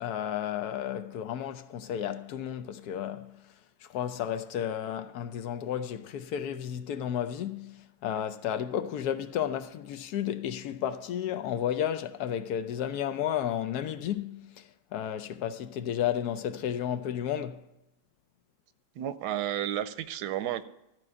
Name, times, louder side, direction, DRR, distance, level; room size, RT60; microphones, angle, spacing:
voice 1, 0.0-3.4 3.8-17.6, left 10 dB, 75° left, 1.1 m, -32 dB
voice 2, 19.0-20.6, right 11 dB, 85° right, 1.2 m, -32 dB
13.5 x 4.6 x 8.6 m
omnidirectional pair, 1.7 m